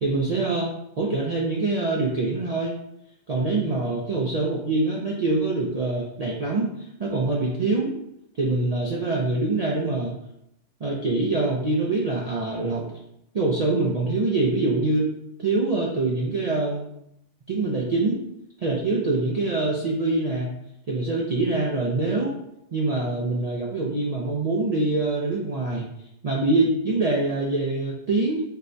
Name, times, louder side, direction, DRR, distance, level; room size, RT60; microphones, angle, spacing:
voice 1, 0.0-2.8 3.3-7.9 8.4-10.1 10.8-12.8 13.3-15.1 15.4-16.8 17.5-18.2 18.6-20.5 20.9-22.4 22.7-25.9 26.2-28.4, right 2 dB, 80° right, -3 dB, 0.3 m, -24 dB
4.2 x 2.1 x 2.5 m, 0.80 s
omnidirectional pair, 1.3 m